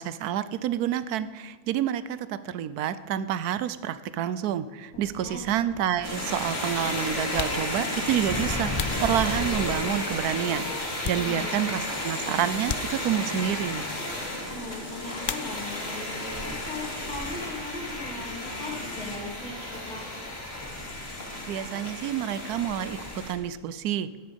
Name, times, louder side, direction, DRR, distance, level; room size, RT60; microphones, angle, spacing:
voice 1, 0.0-10.6 11.0-13.9 21.5-23.0 23.3-24.1, right 10 dB, 85° right, 14 dB, 1.2 m, -28 dB
sound 1, 4.9-23.5, left 2 dB, 20° left, 1.1 m, -41 dB
sound 2, 6.0-23.3, left 1 dB, 45° left, 2.9 m, -33 dB
sound 3, 7.3-9.8 10.4-11.7 12.0-12.2 12.6-13.5 15.2-16.0 16.3-17.0 17.2-19.4, left 8 dB, 65° left, 0.5 m, -39 dB
voice 2, 11.1-11.7 14.3-20.2, left 2 dB, 85° left, -3 dB, 3.8 m, -39 dB
14.0 x 11.0 x 5.3 m, 1.3 s
omnidirectional pair, 1.6 m